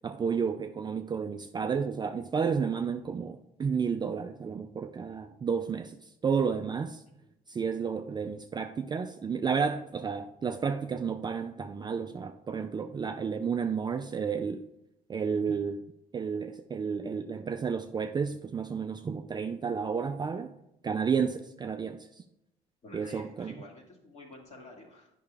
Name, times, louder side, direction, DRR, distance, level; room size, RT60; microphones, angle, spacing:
voice 1, 0.0-7.0 7.5-14.6 15.1-15.8 16.1-20.5 20.8-22.1 22.9-23.6, right 6 dB, 25° right, 0.4 m, -31 dB
voice 2, 22.8-25.1, left 2 dB, 40° left, 2.0 m, -50 dB
8.9 x 5.6 x 3.3 m
cardioid pair, 110°, 17 cm